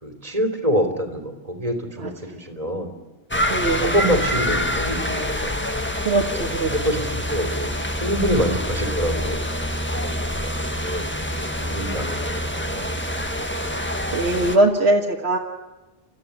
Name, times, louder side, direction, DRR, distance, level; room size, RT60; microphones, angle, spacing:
voice 1, 0.0-2.9 3.8-5.5 6.3-7.7 8.0-11.1 11.4-13.2, equal, 35° right, 6 dB, 3.1 m, -26 dB
sound 1, 3.3-14.6, equal, 10° left, 1.5 m, -26 dB
voice 2, 3.5-3.9 6.0-7.0 14.1-15.4, right 2 dB, 80° right, 1 dB, 1.7 m, -21 dB
29.5 x 14.0 x 9.9 m, 1.1 s
omnidirectional pair, 1.1 m